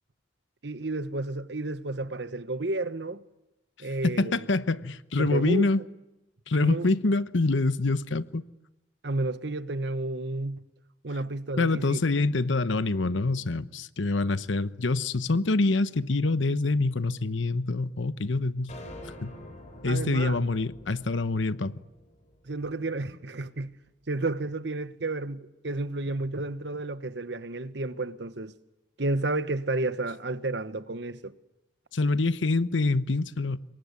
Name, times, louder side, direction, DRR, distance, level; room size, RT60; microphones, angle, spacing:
voice 1, 0.6-3.2 3.8-4.4 5.2-5.7 6.6-6.9 9.0-10.6 11.0-12.0 19.8-20.4 22.5-23.7 24.1-28.5 29.0-31.3, right 2 dB, 65° right, 1.2 m, -31 dB
voice 2, 4.0-5.8 6.5-8.4 11.6-18.7 19.2-19.3 19.8-21.7 31.9-33.6, left 3 dB, 85° left, 1.0 m, -26 dB
sound 1, 18.7-23.1, left 1 dB, 35° left, 4.6 m, -47 dB
26.5 x 23.0 x 9.6 m
head